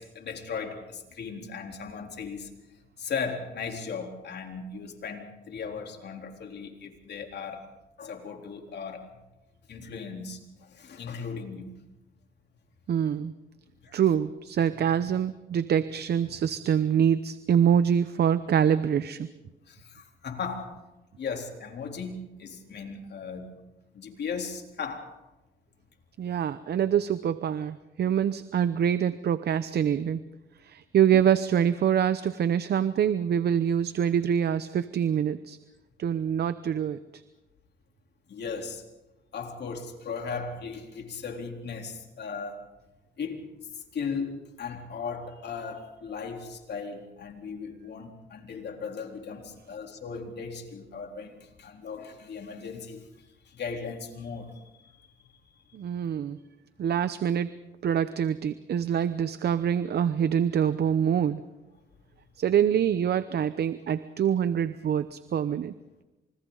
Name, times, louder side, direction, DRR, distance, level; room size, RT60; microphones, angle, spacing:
voice 1, 0.0-2.5 3.0-7.6 8.0-9.0 9.7-10.4 10.7-11.7 13.8-13.9 16.3-16.4 19.7-20.7 21.2-23.5 23.9-25.1 28.1-28.2 31.1-31.2 38.3-38.8 39.3-42.6 43.2-53.0 53.5-54.5, left 5 dB, 60° left, 3 dB, 3.7 m, -37 dB
voice 2, 12.9-13.3 13.9-19.3 26.2-30.2 30.6-35.6 36.0-37.0 55.7-56.4 56.8-57.5 57.8-61.4 62.4-65.7, right 8 dB, 55° right, 13 dB, 0.8 m, -25 dB
30.0 x 27.0 x 4.0 m, 1.0 s
cardioid pair, 90°, 20 cm